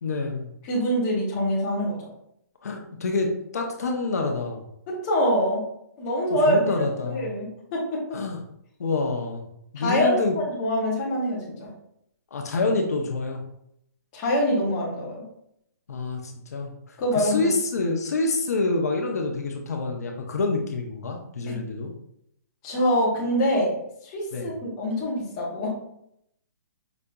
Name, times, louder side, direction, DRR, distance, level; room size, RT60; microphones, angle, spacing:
voice 1, 0.0-0.5 2.6-4.6 6.3-7.3 8.1-8.4 8.8-9.5 9.7-10.3 12.3-13.4 15.9-21.9 24.3-24.5, left 3 dB, 60° left, 2 dB, 0.6 m, -27 dB
voice 2, 0.7-2.0 4.9-5.7 6.0-8.2 9.8-11.7 14.1-15.2 17.0-17.5 21.5-21.6 22.6-23.8 24.0-25.7, equal, 15° left, -5 dB, 0.7 m, -25 dB
4.9 x 2.7 x 2.2 m, 0.74 s
hypercardioid pair, 175°, 10 cm